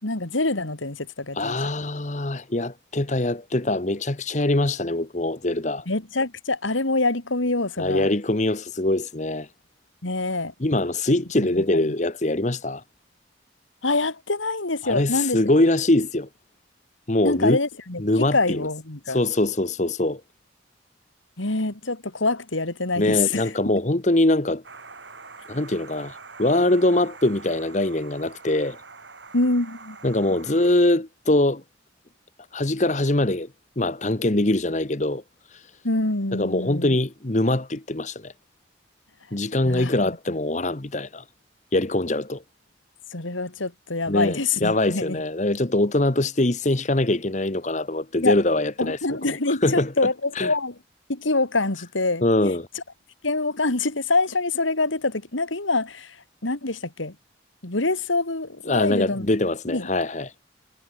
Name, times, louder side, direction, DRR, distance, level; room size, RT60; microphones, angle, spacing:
voice 1, 0.0-1.6 5.9-8.1 10.0-10.5 11.4-11.9 13.8-15.4 17.2-19.2 21.4-23.8 29.3-30.0 35.8-36.9 39.6-39.9 40.3-40.4 43.1-45.2 48.2-48.4 48.8-50.7 51.1-52.2 52.7-52.8 53.2-56.2 56.4-57.2 57.6-59.2 59.7-59.9, left 3 dB, 85° left, 2.9 m, -25 dB
voice 2, 1.3-5.9 7.8-9.5 10.6-12.8 14.8-16.3 17.1-17.6 18.0-18.6 19.1-20.2 23.0-24.6 25.5-28.8 30.0-31.6 32.5-33.5 33.8-35.2 35.5-35.6 36.3-38.3 39.3-41.2 41.7-42.4 44.1-49.0 49.6-49.9 50.3-50.5 52.2-52.7 58.7-60.3, left 1 dB, 40° left, 1.2 m, -23 dB
sound 1, 24.6-30.7, right 4 dB, 70° right, 6.8 m, -44 dB
head